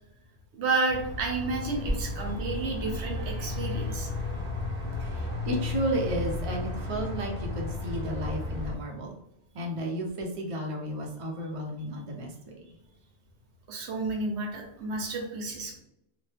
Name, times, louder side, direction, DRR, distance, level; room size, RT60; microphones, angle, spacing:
voice 1, 0.5-4.1 13.7-15.7, right 3 dB, 75° right, 1 dB, 1.0 m, -31 dB
sound 1, 0.9-8.8, left 2 dB, 10° left, 0.8 m, -33 dB
voice 2, 5.0-9.1 9.5-12.5, right 1 dB, 40° right, 0 dB, 0.5 m, -33 dB
3.0 x 2.1 x 3.2 m, 0.82 s
omnidirectional pair, 1.2 m